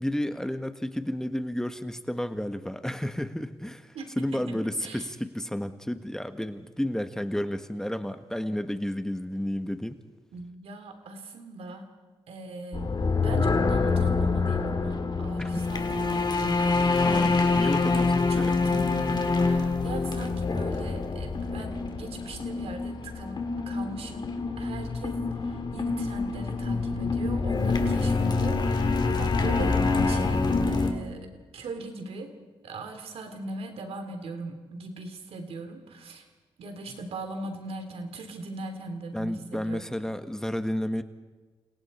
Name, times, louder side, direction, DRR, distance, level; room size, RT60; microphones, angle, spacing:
voice 1, 0.0-10.0 15.4-15.5 17.0-18.6 39.1-41.0, left 1 dB, 5° left, 8 dB, 1.4 m, -31 dB
voice 2, 10.3-11.9 12.3-17.4 18.3-23.4 23.7-32.3 32.6-36.3 36.6-39.9, right 2 dB, 80° right, 6 dB, 3.1 m, -40 dB
sound 1, 12.7-30.9, left 3 dB, 45° left, 3.1 m, -26 dB
30.0 x 28.0 x 4.4 m, 1.3 s
cardioid pair, 65°, 10 cm